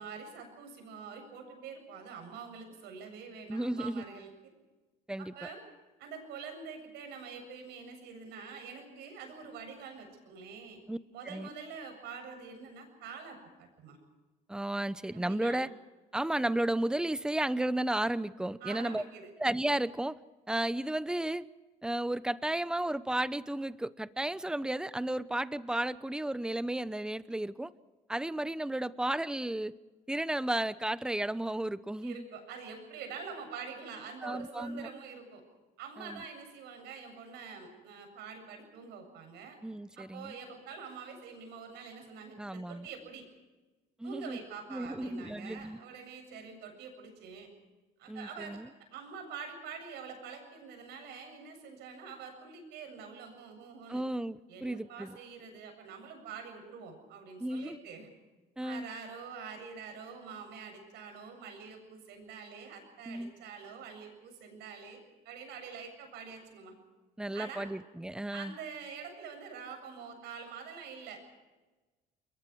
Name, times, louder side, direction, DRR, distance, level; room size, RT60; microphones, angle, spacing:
voice 1, 0.0-4.3 5.2-5.6 6.0-10.8 11.1-14.0 15.1-15.6 18.6-19.3 32.0-35.4 35.8-39.6 40.0-43.2 44.0-47.5 48.0-48.6 48.9-54.0 54.5-58.1 58.6-65.0 65.2-66.7 67.3-67.7 68.3-71.4, right 6 dB, 85° right, 6 dB, 7.6 m, -46 dB
voice 2, 3.5-4.0 5.1-5.3 10.9-11.0 11.3-11.5 14.5-15.7 16.1-19.0 19.4-20.2 20.5-21.5 21.8-27.7 28.1-29.7 30.1-32.2 34.2-34.9 36.0-36.2 39.6-40.3 42.4-42.9 44.0-44.4 44.7-45.8 48.1-48.7 53.9-55.2 57.4-57.8 58.6-58.9 63.1-63.3 67.2-68.6, right 1 dB, 5° right, 15 dB, 0.8 m, -33 dB
29.5 x 22.5 x 4.8 m, 1.2 s
cardioid pair, 110°, 17 cm